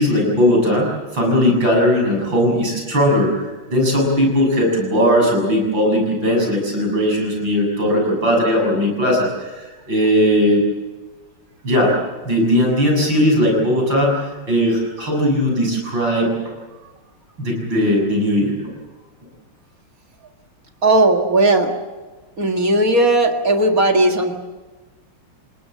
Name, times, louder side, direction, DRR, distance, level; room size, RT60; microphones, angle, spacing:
voice 1, 0.0-3.3 3.7-10.6 11.6-12.0 12.2-16.5 17.4-18.7, equal, 60° right, 0 dB, 8.1 m, -18 dB
voice 2, 20.8-21.7 22.4-24.3, right 2 dB, 40° right, 3 dB, 2.2 m, -16 dB
30.0 x 18.5 x 7.6 m, 1.3 s
omnidirectional pair, 2.3 m